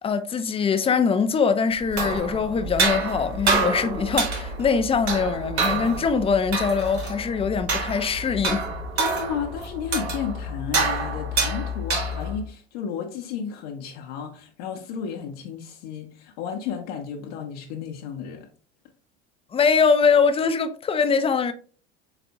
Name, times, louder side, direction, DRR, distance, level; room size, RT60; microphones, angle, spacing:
voice 1, 0.0-8.7 19.5-21.5, left 5 dB, 20° left, 0.3 m, -22 dB
sound 1, 1.8-12.4, right 3 dB, 85° right, 1.0 m, -27 dB
voice 2, 9.0-18.5, left 7 dB, 65° left, 0.7 m, -33 dB
4.0 x 3.4 x 2.7 m
hypercardioid pair, 80°, 32 cm